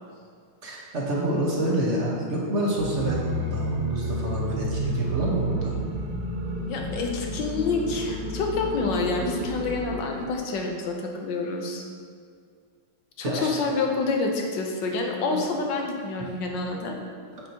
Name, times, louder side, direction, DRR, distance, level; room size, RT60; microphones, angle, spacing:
voice 1, 0.6-5.8 13.2-13.5 15.3-15.4, right 1 dB, 40° right, -3 dB, 1.2 m, -27 dB
sound 1, 2.7-10.4, right 1 dB, 85° right, 1.8 m, -31 dB
voice 2, 6.7-11.8 13.2-17.0, left 3 dB, 65° left, 1 dB, 1.4 m, -28 dB
8.6 x 6.2 x 2.9 m, 2.1 s
omnidirectional pair, 2.3 m